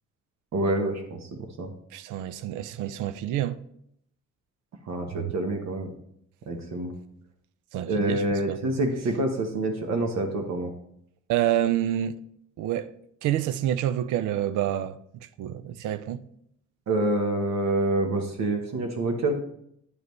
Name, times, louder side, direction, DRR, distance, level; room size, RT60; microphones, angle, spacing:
voice 1, 0.5-1.3 1.6-1.7 4.8-5.9 6.5-6.9 7.9-10.7 16.9-19.4, right 2 dB, 60° right, 1.0 m, -27 dB
voice 2, 1.9-3.6 5.2-5.3 7.7-8.6 11.3-12.2 12.6-12.9 13.2-15.0 15.4-16.2, right 11 dB, 85° right, 0.5 m, -28 dB
9.5 x 5.0 x 3.1 m
cardioid pair, 90°, 30 cm